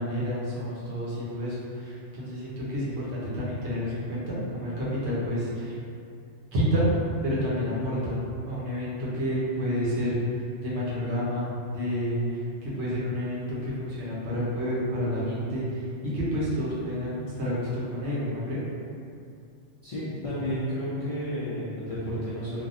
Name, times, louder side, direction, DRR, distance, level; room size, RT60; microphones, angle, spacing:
voice 1, 0.0-1.6 1.8-5.7 6.5-6.9 7.2-8.2 8.5-10.2 10.6-12.2 12.6-15.6 16.1-18.6, equal, 70° right, -7 dB, 1.1 m, -29 dB
voice 2, 19.8-22.6, equal, 50° left, -11 dB, 0.4 m, -31 dB
3.3 x 2.1 x 2.5 m, 2.4 s
omnidirectional pair, 1.2 m